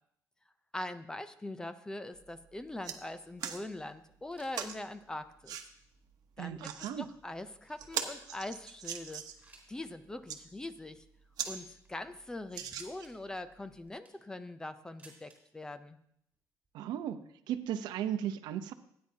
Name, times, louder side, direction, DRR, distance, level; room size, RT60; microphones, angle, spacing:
voice 1, 0.7-5.6 6.4-9.2 9.7-11.0 11.4-16.0, left 2 dB, 10° left, 12 dB, 0.4 m, -42 dB
sound 1, 2.1-2.3 2.6-3.0 3.4-3.6 4.5-4.8 5.5-5.7 6.4-6.9 7.4-7.5 7.8-9.5 10.1-10.4 11.0-11.1 11.4-11.5 11.9-12.0 12.5-13.2 13.9-14.0, right 8 dB, 60° right, 1.0 m, -39 dB
sound 2, 4.1-4.8 5.0-5.1 5.8-5.9 6.6-8.1 8.5-8.6 8.8-9.9 10.2-10.3 10.5-10.7 11.4-11.9 12.7-13.1 13.7-14.3 15.0-15.4 16.3-16.4 16.6-16.7 17.6-17.7, right 4 dB, 20° right, 3.6 m, -56 dB
voice 2, 6.4-7.1 16.7-17.2 17.5-18.7, right 10 dB, 85° right, 9 dB, 0.7 m, -36 dB
17.0 x 9.5 x 2.8 m, 0.71 s
cardioid pair, 165°, 7 cm